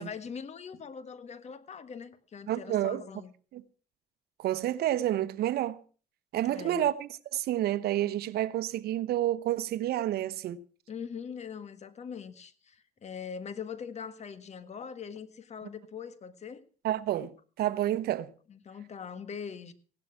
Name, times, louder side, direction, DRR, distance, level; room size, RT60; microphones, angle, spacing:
voice 1, 0.0-3.3 6.4-6.8 10.9-16.6 18.5-19.7, left 6 dB, 40° left, 1.7 m, -42 dB
voice 2, 2.5-3.0 3.5-3.6 4.4-5.8 6.3-10.6 16.8-18.3, right 13 dB, 70° right, 1.0 m, -29 dB
17.0 x 12.0 x 5.9 m
cardioid pair, 110°, 17 cm